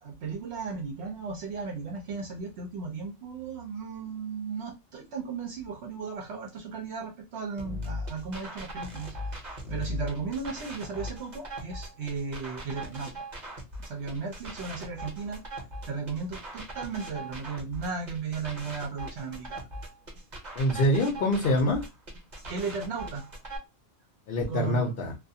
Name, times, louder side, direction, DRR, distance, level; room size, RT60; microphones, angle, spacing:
voice 1, 0.0-9.1 9.7-13.1 13.8-15.4 15.9-19.6 22.5-23.2 24.5-25.0, right 5 dB, 70° right, 0.8 m, -35 dB
sound 1, 7.6-23.6, equal, 40° right, 0.9 m, -39 dB
voice 2, 20.5-21.8 24.3-25.2, left 1 dB, 55° left, 0.7 m, -25 dB
2.4 x 2.3 x 2.6 m
omnidirectional pair, 1.2 m